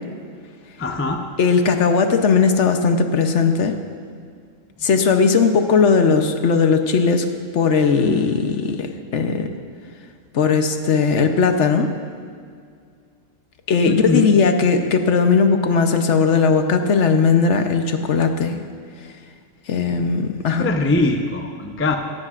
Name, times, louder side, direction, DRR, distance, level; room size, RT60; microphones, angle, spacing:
voice 1, 0.8-1.2 13.9-14.3 20.6-22.0, left 2 dB, 15° left, 4 dB, 0.4 m, -21 dB
voice 2, 1.4-3.8 4.8-7.3 7.5-9.5 10.3-11.9 13.7-18.6 19.7-20.7, left 5 dB, 60° left, 6 dB, 1.0 m, -18 dB
17.5 x 14.0 x 2.5 m, 2.1 s
omnidirectional pair, 1.4 m